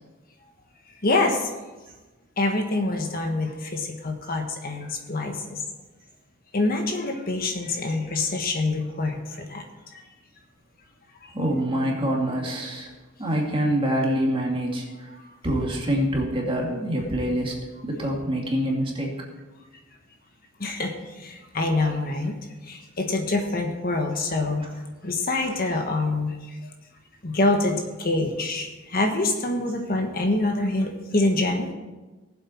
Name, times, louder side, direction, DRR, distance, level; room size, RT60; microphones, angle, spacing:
voice 1, 1.0-1.5 2.4-5.6 6.5-9.6 9.9-10.0 11.2-11.3 20.6-22.3 22.6-24.6 25.0-26.6 27.2-31.7, left 2 dB, 45° left, 3 dB, 1.4 m, -26 dB
voice 2, 11.3-12.9 13.2-15.1 15.4-17.6 17.8-19.2, equal, 25° right, -1 dB, 2.4 m, -25 dB
19.0 x 7.8 x 4.5 m, 1.2 s
head